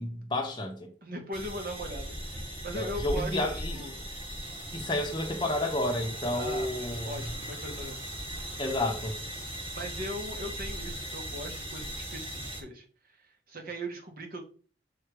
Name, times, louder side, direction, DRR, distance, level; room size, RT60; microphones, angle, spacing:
voice 1, 0.0-0.9 2.8-3.8 4.7-7.3 8.6-9.2, left 1 dB, 25° left, 1.5 m, -31 dB
voice 2, 1.0-4.1 6.3-6.7 7.0-8.0 9.7-14.4, right 1 dB, 50° right, 1.8 m, -39 dB
sound 1, 1.3-12.6, equal, 30° right, 1.9 m, -38 dB
7.3 x 3.3 x 4.9 m
head